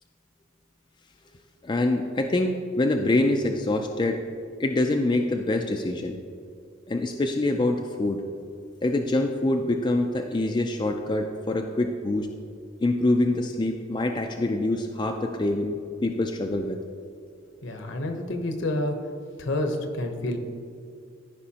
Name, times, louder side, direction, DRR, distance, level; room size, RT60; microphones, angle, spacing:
voice 1, 1.6-4.2 4.6-6.2 6.9-8.2 8.8-12.3 12.8-16.8, left 2 dB, 25° left, 3 dB, 0.3 m, -25 dB
voice 2, 17.6-18.9 19.4-20.4, left 1 dB, 65° left, 5 dB, 0.9 m, -28 dB
14.0 x 5.3 x 2.8 m, 2.3 s
head